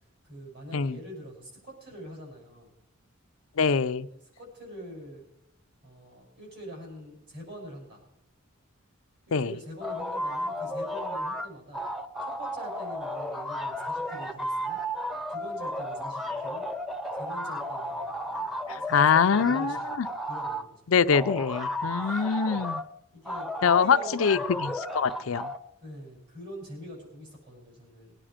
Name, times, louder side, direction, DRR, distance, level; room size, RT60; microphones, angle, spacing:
voice 1, 0.2-2.7 4.1-5.2 5.8-8.0 9.3-11.8 12.2-14.8 15.3-16.7 17.1-19.8 20.3-20.8 21.8-22.1 23.1-24.5 25.8-28.2, equal, 55° right, -1 dB, 6.6 m, -44 dB
voice 2, 3.6-4.1 9.3-9.5 18.7-20.1 20.9-22.8 23.6-25.5, left 6 dB, 75° left, 11 dB, 0.5 m, -24 dB
sound 1, 9.8-11.5 11.7-20.6 21.1-22.9 23.3-25.6, equal, ahead, 0.8 m, -33 dB
20.5 x 10.0 x 5.1 m, 0.81 s
head